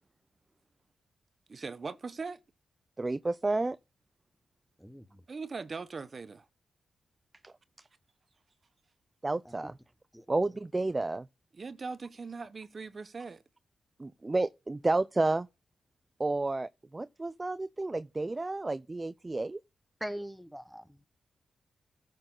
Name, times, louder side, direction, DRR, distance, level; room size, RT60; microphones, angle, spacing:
voice 1, 1.5-2.4 5.3-6.5 11.6-13.4, right 4 dB, 50° right, 1.0 m, -40 dB
voice 2, 3.0-3.8 7.4-7.5 9.2-9.8 10.3-11.3 14.0-15.5 16.2-19.6, right 2 dB, 30° right, 0.5 m, -31 dB
voice 3, 4.8-5.2 9.4-9.5 10.1-10.2 20.0-21.0, equal, ahead, 1.2 m, -41 dB
14.0 x 6.5 x 4.0 m
supercardioid pair, 50°, 0 cm